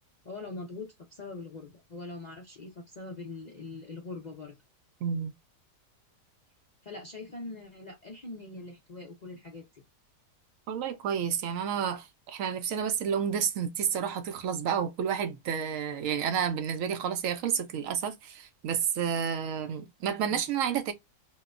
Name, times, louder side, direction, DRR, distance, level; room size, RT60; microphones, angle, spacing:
voice 1, 0.2-4.6 6.8-9.8 20.3-20.4, left 3 dB, 55° left, 0.4 m, -42 dB
voice 2, 5.0-5.3 10.7-20.9, right 7 dB, 70° right, 0.8 m, -30 dB
2.8 x 2.1 x 2.4 m
omnidirectional pair, 1.8 m